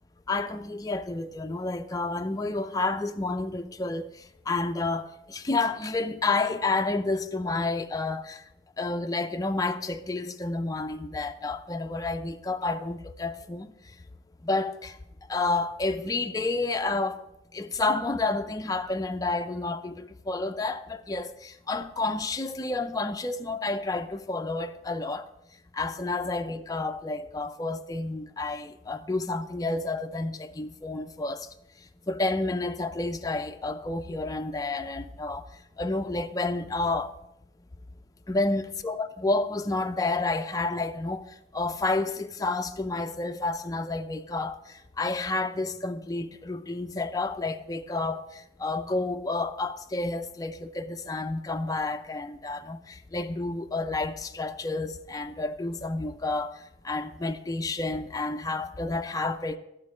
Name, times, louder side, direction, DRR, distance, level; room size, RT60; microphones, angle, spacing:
voice 1, 0.3-4.1 4.5-8.4 8.8-13.7 14.4-15.0 15.3-17.2 17.5-25.3 25.7-31.5 32.1-35.4 35.8-37.1 38.3-59.6, left 3 dB, 20° left, 0.5 m, -30 dB
11.5 x 4.5 x 7.4 m
head